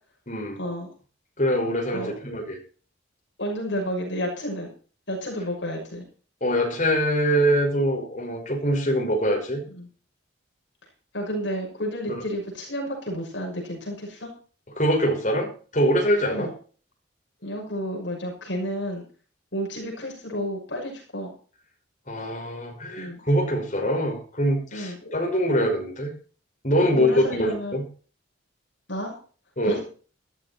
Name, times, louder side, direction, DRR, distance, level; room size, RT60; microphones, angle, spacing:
voice 1, 0.3-0.6 1.4-2.6 6.4-9.6 12.1-12.3 14.8-16.5 22.1-26.1 26.6-27.8 29.6-29.8, equal, 40° left, 3 dB, 5.5 m, -24 dB
voice 2, 3.4-4.7 5.1-6.0 9.7-9.9 11.1-14.3 16.3-16.5 17.4-19.0 19.5-21.3 23.0-23.2 24.7-25.1 26.8-27.8 28.9-29.1 29.6-29.8, equal, 65° left, -1 dB, 6.2 m, -31 dB
14.0 x 14.0 x 4.4 m, 0.39 s
head